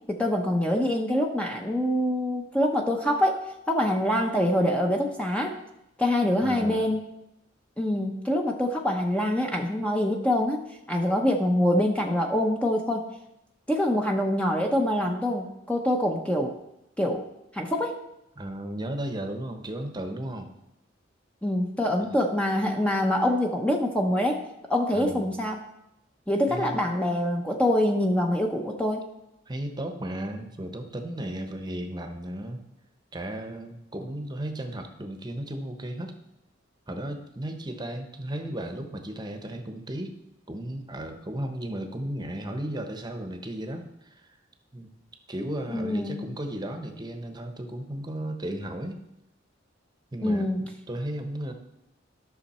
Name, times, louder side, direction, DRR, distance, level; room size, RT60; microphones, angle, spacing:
voice 1, 0.1-5.6 6.0-7.0 7.8-13.0 13.7-16.6 17.0-17.3 17.5-18.0 21.4-24.4 24.7-25.6 26.3-29.0 45.7-46.3 50.2-50.7, left 1 dB, 5° left, 2 dB, 0.7 m, -25 dB
voice 2, 6.4-6.9 18.4-20.5 22.0-22.1 24.9-25.3 26.5-26.9 29.5-32.6 33.1-36.2 36.9-40.1 40.5-44.3 44.7-44.9 45.3-49.0 50.1-51.5, right 1 dB, 20° right, 6 dB, 0.9 m, -35 dB
12.0 x 6.3 x 4.3 m, 0.85 s
head